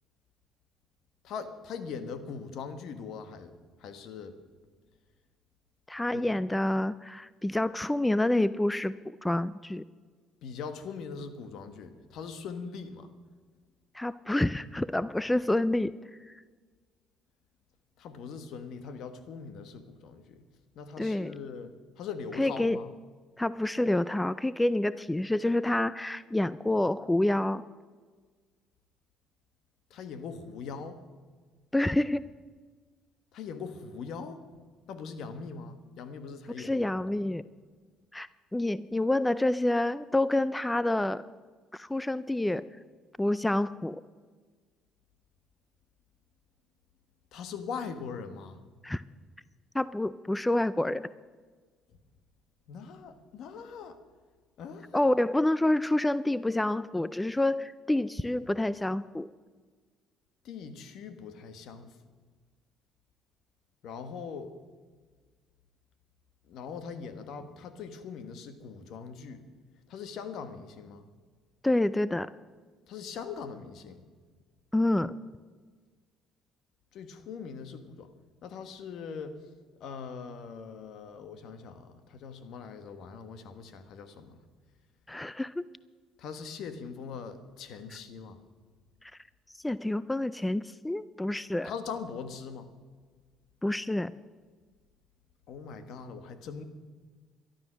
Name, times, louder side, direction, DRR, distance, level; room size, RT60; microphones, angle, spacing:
voice 1, 1.2-3.5 3.8-4.4 6.1-6.3 10.4-13.1 18.0-20.4 20.7-22.9 29.9-31.0 33.3-34.6 34.9-36.7 37.1-37.2 47.3-48.6 52.7-54.0 54.6-55.0 60.4-61.9 63.8-64.5 66.5-69.4 69.9-71.1 72.9-74.0 76.9-78.1 78.4-79.3 79.8-84.3 86.2-88.4 91.6-92.7 95.5-96.6, left 5 dB, 65° left, 10 dB, 1.4 m, -41 dB
voice 2, 5.9-9.8 13.9-15.9 16.3-16.4 21.0-21.3 22.4-22.9 23.4-27.6 31.7-32.3 36.6-37.4 38.1-41.3 41.7-42.7 43.2-44.0 48.8-49.0 49.7-51.1 54.9-59.3 71.6-72.3 74.7-75.2 85.1-85.6 89.0-89.1 89.6-91.7 93.6-94.1, left 1 dB, 10° left, 17 dB, 0.4 m, -28 dB
13.0 x 12.0 x 6.3 m, 1.5 s
cardioid pair, 95°, 0 cm